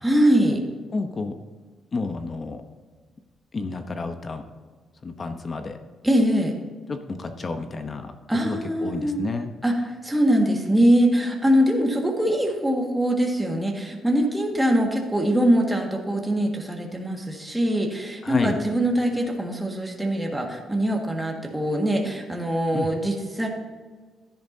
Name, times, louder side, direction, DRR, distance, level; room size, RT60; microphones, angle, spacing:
voice 1, 0.0-0.6 6.0-6.5 8.3-9.2 9.6-23.5, equal, 5° right, 0 dB, 1.8 m, -22 dB
voice 2, 0.9-1.3 1.9-2.6 3.5-4.4 5.0-5.8 6.9-8.1 8.4-9.5 18.2-18.6 22.7-22.9, left 3 dB, 35° left, 7 dB, 0.9 m, -30 dB
12.5 x 10.5 x 2.8 m, 1.4 s
cardioid pair, 90°, 0 cm